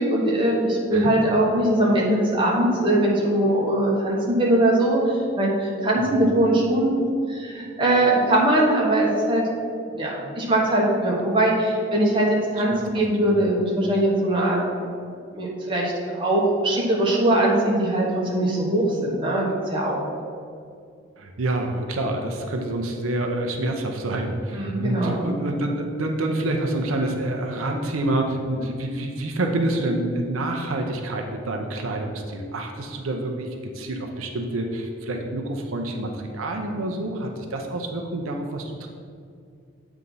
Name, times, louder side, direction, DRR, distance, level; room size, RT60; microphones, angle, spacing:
voice 1, 0.0-6.9 7.3-9.4 9.9-14.9 15.3-18.0 18.3-20.0 24.5-25.2 28.6-28.7, right 1 dB, 25° right, -4 dB, 1.2 m, -21 dB
voice 2, 21.2-33.5 33.7-38.9, right 1 dB, 85° right, 3 dB, 0.7 m, -27 dB
7.8 x 3.6 x 5.4 m, 2.4 s
head